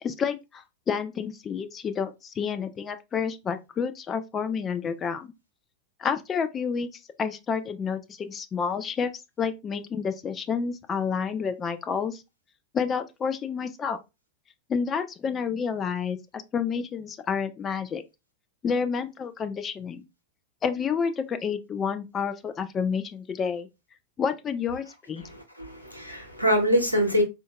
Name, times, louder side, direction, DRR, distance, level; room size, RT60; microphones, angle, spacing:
voice 1, 0.0-5.3 6.0-6.9 7.2-9.1 9.4-12.2 12.7-14.0 14.7-16.2 16.5-18.0 18.6-20.0 20.6-23.7 24.2-25.3, left 6 dB, 25° left, 0.4 m, -29 dB
voice 2, 25.2-27.2, equal, 85° right, 0.8 m, -24 dB
3.7 x 2.5 x 2.2 m
figure-of-eight pair, 90°, 0 cm